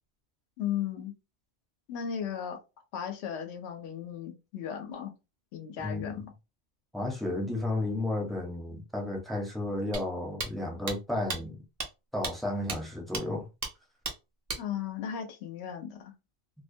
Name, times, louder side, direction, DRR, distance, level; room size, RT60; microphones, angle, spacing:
voice 1, 0.6-1.2 1.9-2.6 2.9-5.1 5.5-6.3 14.6-16.1, left 9 dB, 85° left, 0.8 m, -36 dB
voice 2, 5.8-6.3 6.9-11.6 12.1-13.5, left 2 dB, ahead, 0.5 m, -33 dB
sound 1, 9.9-10.0 10.4-10.5 10.9-11.0 11.3-11.4 11.8-11.9 12.2-12.3 12.7-12.8 13.1-13.2 13.6-13.7 14.0-14.2 14.5-14.6, right 4 dB, 45° right, 0.6 m, -33 dB
2.3 x 2.1 x 2.6 m
omnidirectional pair, 1.1 m